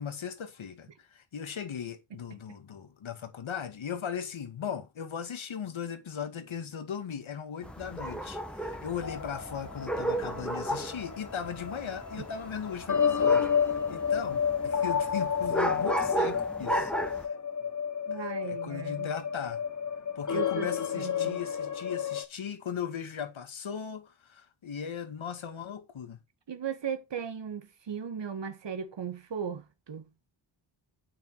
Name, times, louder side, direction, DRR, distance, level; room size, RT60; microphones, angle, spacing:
voice 1, 0.0-17.4 18.1-19.6 20.2-26.2, left 7 dB, 75° left, 2.2 m, -38 dB
sound 1, 7.6-17.3, right 1 dB, ahead, 1.6 m, -35 dB
sound 2, 9.0-22.2, left 7 dB, 40° left, 1.4 m, -31 dB
voice 2, 18.1-19.1 20.3-20.7 21.0-21.4 26.5-30.1, right 7 dB, 60° right, 1.8 m, -37 dB
9.0 x 6.8 x 4.8 m
wide cardioid pair, 105°, 48 cm